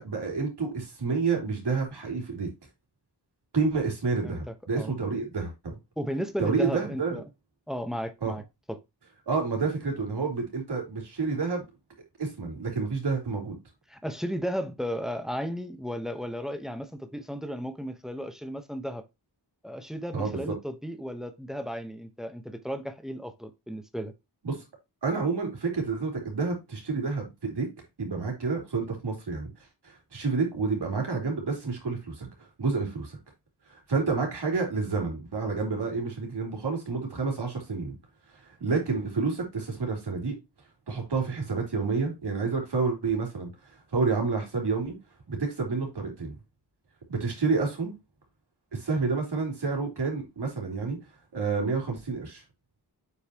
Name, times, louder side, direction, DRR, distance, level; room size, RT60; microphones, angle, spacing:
voice 1, 0.0-2.5 3.5-5.7 6.4-7.2 8.2-8.3 9.3-11.6 12.2-13.6 20.1-20.4 24.4-24.6 25.0-27.7 28.0-29.5 29.8-33.2 33.7-37.9 38.4-40.3 40.9-43.5 43.9-45.0 45.3-46.3 47.1-47.9 48.7-51.0 51.3-52.4, right 4 dB, 80° right, 3.4 m, -29 dB
voice 2, 4.2-5.2 6.0-7.2 7.7-8.4 8.7-8.8 13.9-19.0 19.6-24.1, equal, ahead, 1.0 m, -34 dB
8.1 x 5.6 x 2.9 m
wide cardioid pair, 140°, 40 cm